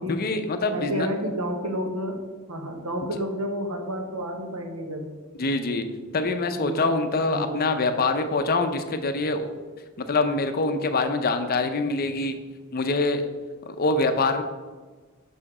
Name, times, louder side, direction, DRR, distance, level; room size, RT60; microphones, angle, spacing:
voice 1, 0.1-1.1 5.4-5.9 6.1-9.5 10.0-12.4 12.7-13.2 13.7-14.4, left 3 dB, 45° left, 8 dB, 0.5 m, -24 dB
voice 2, 0.7-2.2 2.5-5.1 6.6-6.8 7.2-7.8, equal, 75° right, 4 dB, 1.1 m, -30 dB
6.3 x 5.0 x 4.8 m, 1.3 s
head